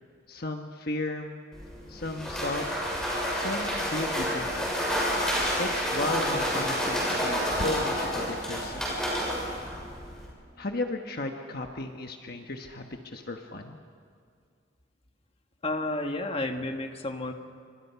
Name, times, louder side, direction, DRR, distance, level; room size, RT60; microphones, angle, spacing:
voice 1, 0.3-1.4 1.9-2.7 3.3-4.7 5.6-8.9 10.6-13.8, left 2 dB, 50° left, 4 dB, 1.3 m, -34 dB
sound 1, 1.5-10.3, equal, 5° left, 6.9 m, -29 dB
voice 2, 15.6-17.3, left 2 dB, 30° left, 4 dB, 1.7 m, -31 dB
29.5 x 25.5 x 5.8 m, 2.2 s
head